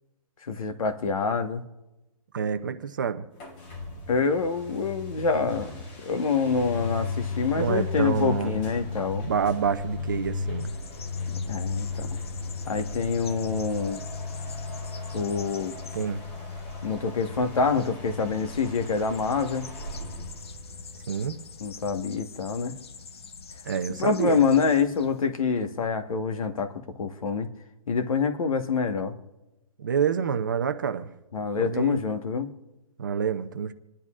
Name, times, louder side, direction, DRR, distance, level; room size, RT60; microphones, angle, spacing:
voice 1, 0.4-1.7 4.1-5.7 6.0-9.3 11.4-12.1 12.7-14.0 15.1-15.7 16.8-19.7 21.6-22.7 23.9-27.5 27.9-29.1 31.3-32.5, left 5 dB, 65° left, 1.3 m, -26 dB
voice 2, 2.3-3.2 7.5-8.5 9.2-10.7 15.9-16.2 21.1-21.4 23.7-24.4 29.8-31.1 31.6-32.0 33.0-33.7, right 7 dB, 30° right, 0.6 m, -27 dB
sound 1, 3.3-21.8, left 3 dB, 15° left, 1.0 m, -35 dB
sound 2, 10.6-25.3, left 5 dB, 45° left, 0.8 m, -46 dB
27.5 x 10.5 x 2.4 m
hypercardioid pair, 175°, 19 cm